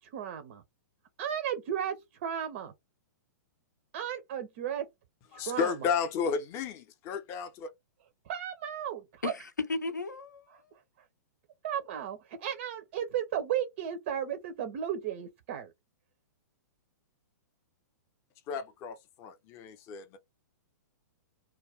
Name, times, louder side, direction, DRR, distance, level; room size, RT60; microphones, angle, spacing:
voice 1, 0.1-0.6 1.2-2.7 3.9-4.9 5.3-5.7 8.3-9.3 11.6-15.7, right 9 dB, 40° right, 0.4 m, -34 dB
voice 2, 5.3-7.7 18.5-20.2, left 6 dB, 25° left, 0.5 m, -33 dB
voice 3, 9.2-10.7, left 3 dB, 75° left, 0.6 m, -35 dB
2.3 x 2.2 x 3.4 m
figure-of-eight pair, 110°, 10 cm